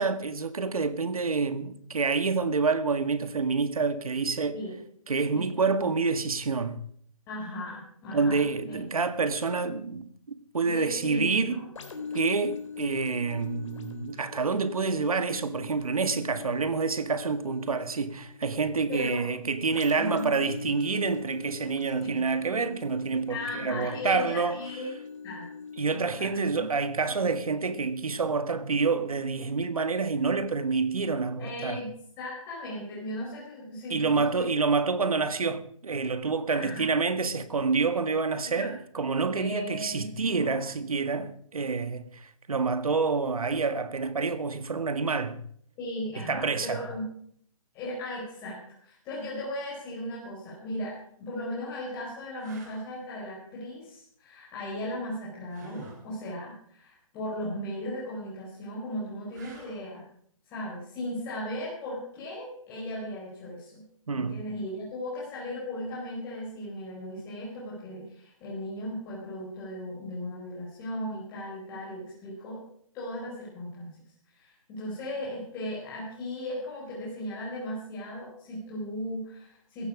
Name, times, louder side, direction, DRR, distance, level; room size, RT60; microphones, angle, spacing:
voice 1, 0.0-4.6 5.1-6.8 8.1-11.6 12.1-24.6 25.8-31.8 33.9-45.4 46.2-46.8 64.1-64.4, right 4 dB, 85° right, 1.9 m, -28 dB
voice 2, 7.3-8.8 10.6-11.6 18.9-19.2 20.0-20.3 22.0-22.2 23.3-24.9 25.2-25.5 25.9-26.6 31.4-31.9 32.2-34.5 36.5-37.0 38.4-38.7 39.2-40.6 45.8-47.1 47.7-48.6 48.8-60.0 60.5-63.8 64.2-72.6 72.9-73.9 74.3-79.9, left 1 dB, 15° left, 4.7 m, -37 dB
sound 1, 11.7-29.3 29.8-29.9, left 5 dB, 60° left, 3.8 m, -43 dB
sound 2, 50.8-51.0 51.7-51.8 52.4-52.9 55.5-56.0 59.3-59.9 62.9-63.1, right 3 dB, 30° right, 3.6 m, -47 dB
16.5 x 15.0 x 5.0 m
hypercardioid pair, 170°, 18 cm